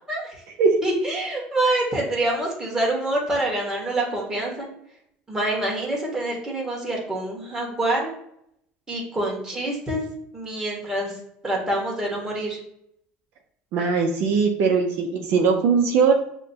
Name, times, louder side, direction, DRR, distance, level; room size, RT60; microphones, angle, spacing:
voice 1, 0.8-4.7 5.3-8.1 8.9-10.0 10.3-11.1 11.4-12.6, right 1 dB, 15° right, -3 dB, 1.5 m, -26 dB
voice 2, 13.7-16.1, right 5 dB, 65° right, 2 dB, 0.5 m, -20 dB
6.4 x 2.2 x 2.7 m, 0.74 s
supercardioid pair, 105°, 4 cm